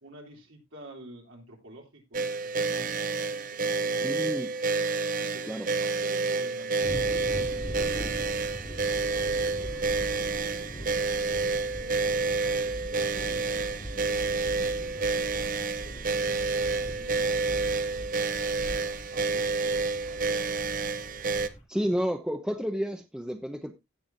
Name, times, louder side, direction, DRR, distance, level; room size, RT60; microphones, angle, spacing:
voice 1, 0.0-4.8 5.2-8.5 9.0-11.2 11.7-18.3 18.7-20.5, right 1 dB, 65° right, 3.4 m, -50 dB
sound 1, 2.1-21.5, right 4 dB, 40° right, 0.7 m, -29 dB
voice 2, 4.0-4.5 5.5-5.7 21.7-23.7, equal, 5° right, 0.8 m, -30 dB
sound 2, 6.8-21.6, equal, 35° left, 2.7 m, -41 dB
16.5 x 7.0 x 2.7 m
head